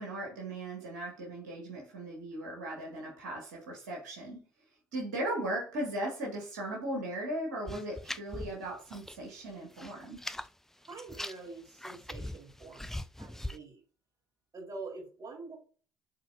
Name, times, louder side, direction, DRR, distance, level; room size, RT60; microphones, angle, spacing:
voice 1, 0.0-4.4 4.9-10.2, right 1 dB, 80° right, -2 dB, 2.1 m, -37 dB
sound 1, 7.7-9.2 9.5-10.5 10.8-13.6, left 1 dB, 5° left, 0.5 m, -41 dB
voice 2, 10.9-13.8 14.5-15.6, right 3 dB, 40° right, -1 dB, 4.1 m, -45 dB
11.5 x 4.2 x 2.7 m, 0.39 s
hypercardioid pair, 55°, 9 cm